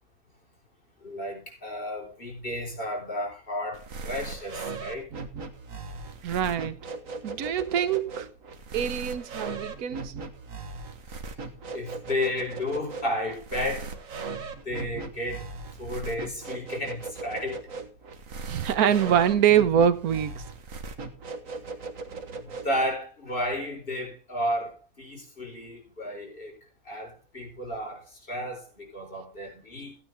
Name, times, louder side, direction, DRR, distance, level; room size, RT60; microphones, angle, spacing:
voice 1, 1.0-5.1 11.7-13.9 14.6-15.5 15.8-17.6 22.4-26.5 26.8-28.0 28.3-30.0, left 1 dB, 35° left, 4.5 m, -32 dB
sound 1, 3.7-22.9, right 4 dB, 65° right, 1.8 m, -38 dB
voice 2, 6.2-6.8 7.2-8.3 8.7-10.1 18.4-20.4, right 9 dB, 90° right, 1.4 m, -24 dB
15.0 x 9.3 x 3.4 m
omnidirectional pair, 1.5 m